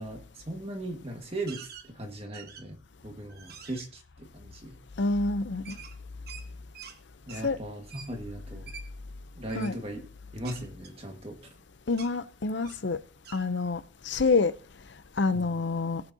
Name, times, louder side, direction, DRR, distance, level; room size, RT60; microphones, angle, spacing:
voice 1, 0.0-4.8 7.3-8.7 9.3-10.0 10.3-11.5 15.3-15.5, right 1 dB, 30° right, 1.7 m, -38 dB
sound 1, 1.5-1.9 2.3-2.8 3.3-3.9 5.7-7.0 7.3-7.5 7.9-8.1 8.7-8.9 9.5-9.7 10.4-11.6 11.9-12.1 12.6-12.9 13.2-13.4, right 7 dB, 50° right, 1.2 m, -46 dB
voice 2, 5.0-5.7 7.4-7.6 9.5-9.7 11.9-13.0 13.3-13.8 14.1-14.5 15.2-16.0, left 3 dB, 65° left, 0.6 m, -27 dB
19.0 x 8.6 x 2.8 m
head